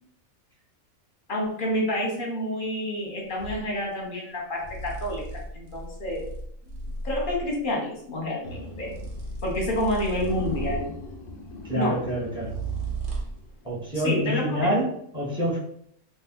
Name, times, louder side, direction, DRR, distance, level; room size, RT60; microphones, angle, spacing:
voice 1, 1.3-6.3 7.0-9.0 9.4-10.9 11.7-12.0 13.9-14.7, left 1 dB, 45° left, -2 dB, 0.8 m, -29 dB
sound 1, 3.4-3.7 4.6-7.6 8.8-11.1 12.4-13.5, right 3 dB, 65° right, 0.7 m, -35 dB
sound 2, 8.4-9.4 9.7-9.8 10.1-13.5, left 1 dB, 65° left, 0.5 m, -39 dB
voice 2, 11.6-12.5 13.6-15.6, equal, 5° right, -4 dB, 0.7 m, -27 dB
2.5 x 2.3 x 3.7 m, 0.68 s
omnidirectional pair, 1.5 m